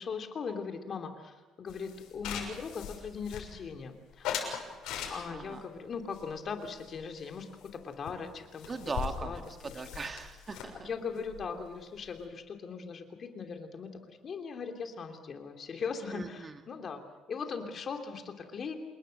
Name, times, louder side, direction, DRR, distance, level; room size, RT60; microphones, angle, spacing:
voice 1, 0.0-4.6 5.1-8.7 9.2-9.8 10.8-17.0 17.3-18.7, left 5 dB, 35° left, 5 dB, 3.0 m, -39 dB
sound 1, 1.7-3.8 4.2-5.5 6.1-7.4 7.6-7.8 8.1-8.2 8.4-12.2, left 8 dB, 85° left, 6.4 m, -40 dB
voice 2, 5.3-5.6 8.7-10.9 16.1-16.5, right 4 dB, 20° right, 6 dB, 1.9 m, -39 dB
27.5 x 21.0 x 6.5 m, 1.3 s
cardioid pair, 150°, 0 cm